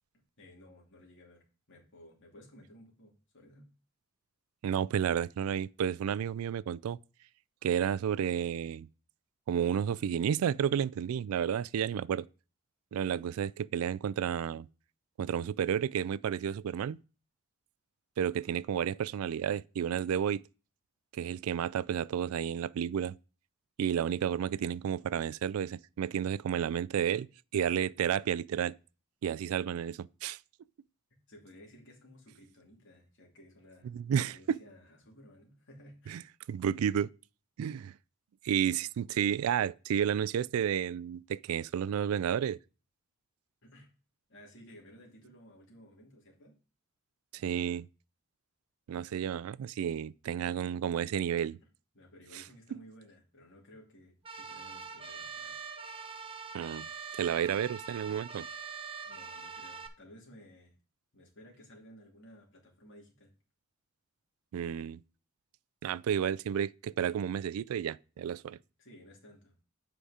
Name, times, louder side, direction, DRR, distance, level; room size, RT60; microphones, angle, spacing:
voice 1, 0.4-3.7 31.3-33.9 34.3-36.2 43.6-43.9 44.3-46.6 51.9-55.6 59.1-60.7 61.1-63.3 68.8-69.5, equal, 60° left, 2.7 m, -56 dB
voice 2, 4.6-7.0 7.6-8.9 9.5-12.2 12.9-14.7 15.2-17.0 18.2-20.4 21.2-23.1 23.8-27.3 27.5-28.8 29.2-30.4 33.9-34.6 36.1-36.2 36.5-37.1 37.6-37.9 38.4-42.6 47.3-47.9 48.9-51.6 56.5-56.9 57.2-58.5 64.5-65.0 65.8-68.6, right 8 dB, 85° right, 0.3 m, -31 dB
sound 1, 54.3-59.9, right 5 dB, 25° right, 0.8 m, -43 dB
7.8 x 5.0 x 4.9 m
head